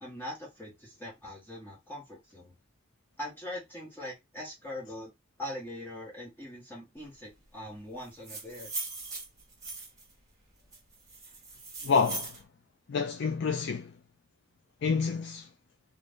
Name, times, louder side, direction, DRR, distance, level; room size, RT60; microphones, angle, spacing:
voice 1, 0.0-2.5 3.2-5.1 5.4-8.7, left 1 dB, 10° left, 1.2 m, -42 dB
sound 1, 8.0-10.1 10.7-12.4, right 3 dB, 15° right, 1.2 m, -40 dB
voice 2, 11.8-12.4 12.9-13.9 14.8-15.5, left 5 dB, 50° left, 0.3 m, -28 dB
2.6 x 2.5 x 3.3 m
head